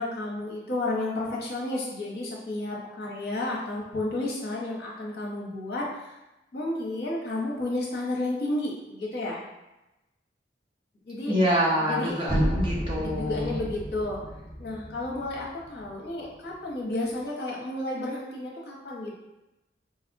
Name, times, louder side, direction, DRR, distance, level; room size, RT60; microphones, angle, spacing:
voice 1, 0.0-6.1 6.5-9.4 11.1-11.3 11.8-12.2 13.0-14.2 14.6-19.1, left 2 dB, 60° left, -3 dB, 0.7 m, -32 dB
voice 2, 11.3-13.6, equal, 30° right, -6 dB, 0.6 m, -26 dB
sound 1, 12.3-16.2, equal, 5° right, 1.1 m, -32 dB
3.9 x 2.0 x 2.5 m, 1.0 s
head